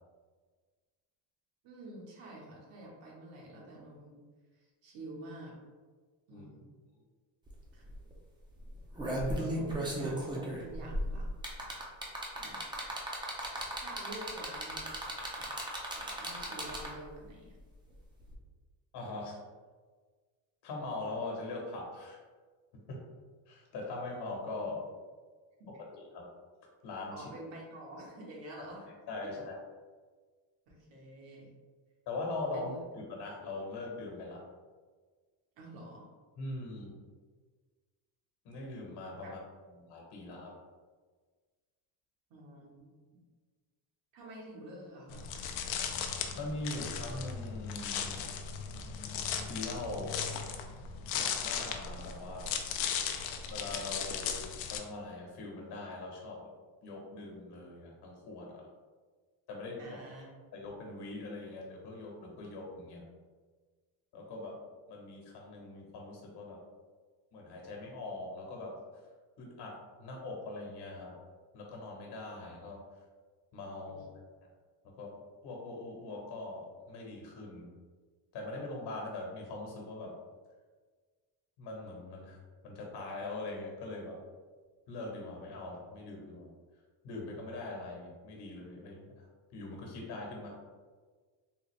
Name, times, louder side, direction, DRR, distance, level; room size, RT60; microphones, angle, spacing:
voice 1, 1.6-4.2 4.8-5.5 6.3-6.7 7.7-7.8 9.3-11.3 12.4-12.6 13.7-14.9 15.3-15.5 16.2-17.6 24.6-24.7 25.6-25.7 27.1-28.9 29.2-29.3 30.7-31.5 32.5-32.8 35.6-36.0 39.2-39.3 42.3-42.9 44.1-45.2 59.8-60.3 73.9-74.0, right 1 dB, 70° right, -3 dB, 1.2 m, -48 dB
sound 1, 7.5-7.6 7.9-8.1 8.7-17.1 18.3-18.4, right 1 dB, 10° right, 0.4 m, -36 dB
voice 2, 18.9-19.4 20.6-22.2 22.7-23.0 23.5-24.8 25.9-26.3 26.8-27.2 28.6-28.7 29.1-29.6 32.1-34.4 36.4-36.9 38.4-39.4 39.8-40.5 46.4-48.2 49.5-50.2 51.1-52.5 53.5-56.5 56.8-58.6 59.5-60.0 60.5-63.0 64.1-64.6 64.9-66.6 67.3-68.7 69.4-69.7 70.0-71.1 71.5-72.8 73.5-74.2 74.8-75.1 75.4-77.7 78.3-80.1 81.6-84.2 84.9-86.5 87.0-89.3 89.5-90.5, left 2 dB, 60° left, -1 dB, 1.1 m, -41 dB
sound 2, 45.1-54.8, left 7 dB, 80° left, 0.6 m, -37 dB
3.7 x 2.5 x 3.1 m, 1.4 s
cardioid pair, 135°, 45 cm